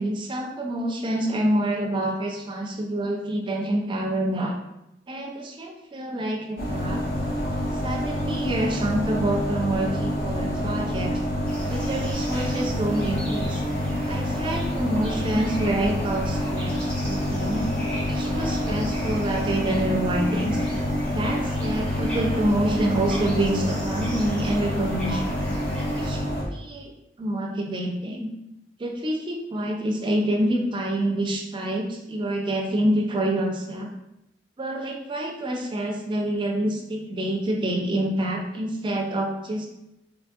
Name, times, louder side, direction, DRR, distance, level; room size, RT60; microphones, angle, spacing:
voice 1, 0.0-4.6 5.1-7.0 7.8-11.2 11.7-13.6 14.1-17.7 18.1-20.6 21.1-25.5 25.9-26.9 27.2-28.3 28.8-33.9 34.6-39.7, right 1 dB, 30° right, 1 dB, 0.4 m, -27 dB
sound 1, 6.6-26.4, left 1 dB, 55° left, 0.6 m, -27 dB
sound 2, 11.5-26.1, equal, 5° left, 0.6 m, -40 dB
2.8 x 2.3 x 2.6 m, 0.87 s
head